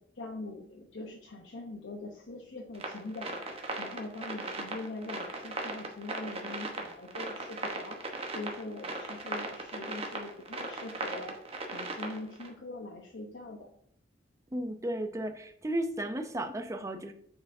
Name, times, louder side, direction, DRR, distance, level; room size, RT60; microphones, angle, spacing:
voice 1, 0.2-3.4 3.8-8.0 8.3-11.3 11.7-13.7, left 2 dB, 80° left, 0 dB, 0.8 m, -42 dB
sound 1, 2.7-12.5, right 2 dB, 35° right, 1.0 m, -38 dB
voice 2, 14.5-17.1, right 1 dB, 15° right, 6 dB, 0.5 m, -34 dB
8.6 x 4.5 x 2.6 m, 0.67 s
head